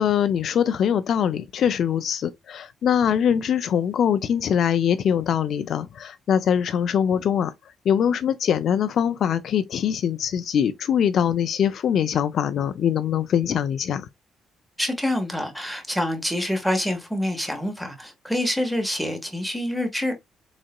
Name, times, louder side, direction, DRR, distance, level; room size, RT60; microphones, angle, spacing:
voice 1, 0.0-7.5 7.9-14.1, left 8 dB, 65° left, 0.3 m, -23 dB
voice 2, 14.8-20.2, left 1 dB, ahead, 1.3 m, -26 dB
4.0 x 3.6 x 2.2 m
cardioid pair, 90°, 0 cm